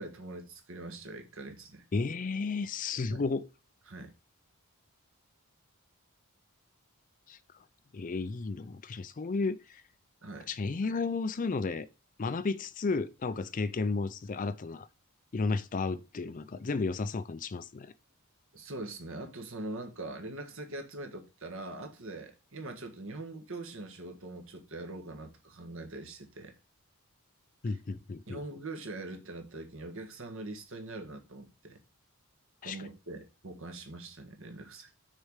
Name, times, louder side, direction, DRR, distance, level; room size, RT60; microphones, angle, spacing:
voice 1, 0.0-1.8 3.1-3.2 3.9-4.1 10.2-10.5 18.5-26.5 27.6-27.8 28.3-31.8 32.6-35.0, right 2 dB, 60° right, 1.6 m, -43 dB
voice 2, 1.9-3.5 7.3-7.4 7.9-9.8 10.5-11.9 12.2-14.9 15.3-17.9 27.6-28.4 32.6-32.8, left 4 dB, 35° left, 0.4 m, -33 dB
6.4 x 4.7 x 6.5 m
head